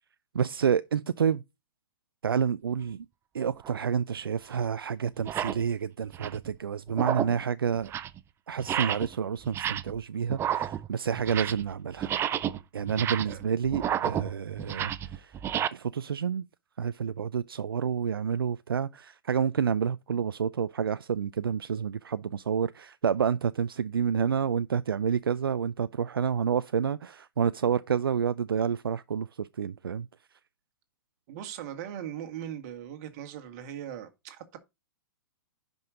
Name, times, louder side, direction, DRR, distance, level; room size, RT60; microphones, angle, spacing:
voice 1, 0.3-1.4 2.2-3.1 3.3-7.9 8.5-12.1 12.7-15.4 15.7-16.5 16.8-30.1, right 7 dB, 75° right, 0.4 m, -29 dB
sound 1, 3.6-3.8 4.5-4.6 5.2-5.6 6.0-6.5 6.9-7.4 7.7-8.2 8.6-9.2 9.4-10.0 10.3-11.7 12.0-15.7, right 10 dB, 20° right, 0.6 m, -31 dB
voice 2, 31.3-34.6, right 10 dB, 45° right, 2.0 m, -39 dB
10.5 x 5.3 x 3.8 m
figure-of-eight pair, 115°, 12 cm